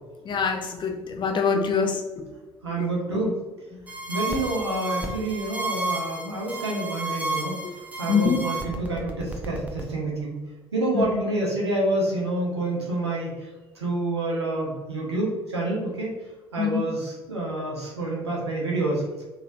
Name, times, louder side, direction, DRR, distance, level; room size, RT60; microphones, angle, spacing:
voice 1, 0.2-2.3 2.8-2.9 3.7-3.9 7.6-7.7 8.1-8.4 10.9-11.1 16.6-16.9, left 6 dB, 35° left, 3 dB, 0.6 m, -25 dB
voice 2, 2.6-3.3 4.1-7.6 8.0-10.4 10.7-13.3 13.8-16.1 16.5-19.0, right 2 dB, 85° right, -3 dB, 0.7 m, -28 dB
sound 1, 3.9-9.8, right 2 dB, 10° right, 0.6 m, -32 dB
3.1 x 2.8 x 2.5 m, 1.2 s
figure-of-eight pair, 50°, 14 cm